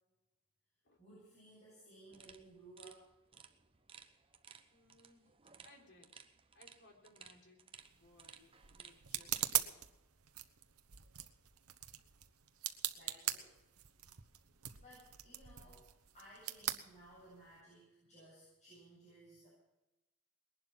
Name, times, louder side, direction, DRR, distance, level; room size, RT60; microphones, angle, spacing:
voice 1, 1.0-3.1 12.8-13.5 14.8-15.9 16.1-19.5, right 1 dB, 35° left, -7 dB, 7.9 m, -59 dB
sound 1, 2.1-9.5, right 6 dB, 25° right, 0.9 m, -59 dB
voice 2, 4.7-5.3 5.6-6.2 6.5-7.6 7.9-9.8, left 2 dB, 50° left, 1 dB, 3.8 m, -64 dB
sound 2, 7.8-17.6, right 13 dB, 85° right, 1.1 m, -42 dB
20.5 x 11.5 x 5.9 m, 0.99 s
head